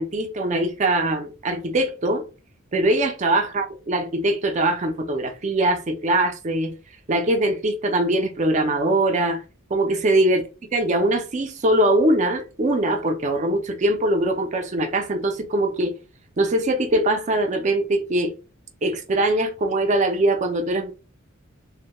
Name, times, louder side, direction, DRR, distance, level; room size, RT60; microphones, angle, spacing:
voice 1, 0.0-2.2 2.7-6.7 7.1-9.4 9.7-10.4 10.7-15.9 16.4-18.3 18.8-20.9, right 1 dB, 35° right, 0.4 m, -22 dB
2.1 x 2.1 x 2.9 m
head